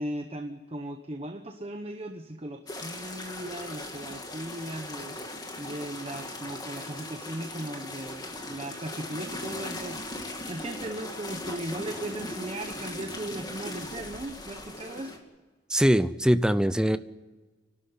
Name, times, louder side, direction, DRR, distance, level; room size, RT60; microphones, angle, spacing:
voice 1, 0.0-5.2 5.6-15.2, right 1 dB, 30° right, 6 dB, 1.1 m, -37 dB
sound 1, 2.7-15.2, left 1 dB, 20° left, 2.4 m, -39 dB
voice 2, 15.7-17.0, equal, 5° right, 13 dB, 0.6 m, -22 dB
29.5 x 12.5 x 9.8 m, 1.3 s
head